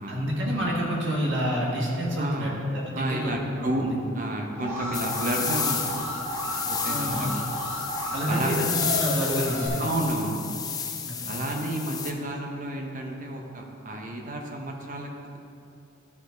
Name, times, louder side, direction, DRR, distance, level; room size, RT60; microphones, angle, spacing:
voice 1, 0.1-3.3 3.6-3.9 6.8-7.3 8.1-9.8 11.1-11.4, equal, 60° right, -3 dB, 1.7 m, -28 dB
voice 2, 2.2-2.5 2.9-5.8 6.7-7.4 8.3-8.7 9.8-10.4 11.2-15.1, right 1 dB, 40° right, 1 dB, 0.9 m, -31 dB
Alarm, 4.5-9.7, equal, 15° right, 1.9 m, -32 dB
sound 1, 4.9-12.1, left 6 dB, 20° left, 0.5 m, -32 dB
13.0 x 5.1 x 3.8 m, 2.6 s
head